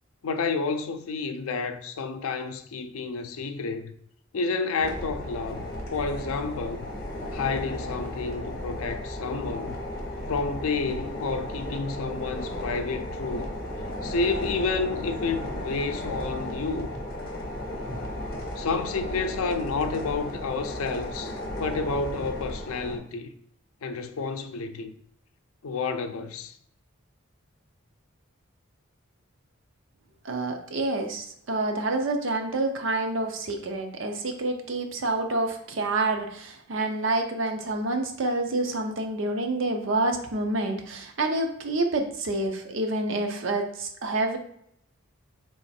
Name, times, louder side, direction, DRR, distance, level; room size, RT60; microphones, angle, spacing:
voice 1, 0.2-3.9 4.3-6.9 7.3-9.8 10.3-13.5 14.0-16.9 18.6-23.3 23.8-24.9 25.6-26.5, left 4 dB, 85° left, 0.4 m, -30 dB
sound 1, 4.8-23.0, left 1 dB, 45° left, 0.9 m, -34 dB
voice 2, 30.2-44.4, right 2 dB, 65° right, 0.6 m, -28 dB
3.5 x 3.2 x 4.2 m
head